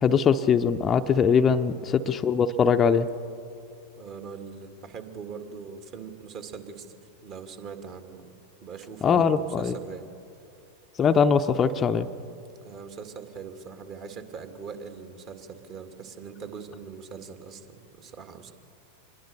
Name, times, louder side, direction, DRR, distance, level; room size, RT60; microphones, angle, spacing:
voice 1, 0.0-3.1 9.0-9.7 11.0-12.1, left 6 dB, 25° left, 8 dB, 0.7 m, -21 dB
voice 2, 4.0-8.3 8.6-10.1 12.6-18.5, right 6 dB, 35° right, 7 dB, 2.2 m, -41 dB
26.0 x 21.0 x 6.8 m, 2.5 s
figure-of-eight pair, 90°, 0 cm